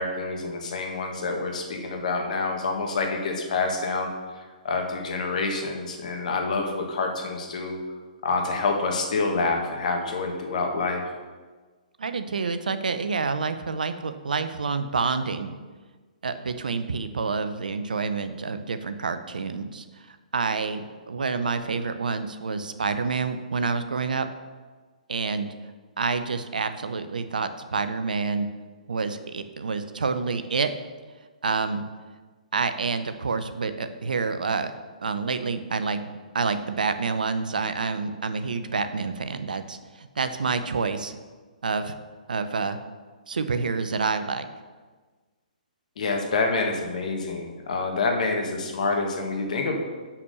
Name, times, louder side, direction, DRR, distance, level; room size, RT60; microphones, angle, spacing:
voice 1, 0.0-4.1 4.3-7.8 8.2-11.0 46.0-49.8, left 3 dB, 60° left, 3 dB, 1.6 m, -27 dB
voice 2, 12.0-15.5 16.2-24.3 25.1-25.5 26.0-28.5 28.9-30.7 31.4-31.8 32.5-34.7 35.0-41.1 41.6-41.9 42.3-42.8 43.3-44.5, right 4 dB, 75° right, 10 dB, 0.7 m, -28 dB
6.2 x 5.8 x 6.8 m, 1.4 s
hypercardioid pair, 130°, 4 cm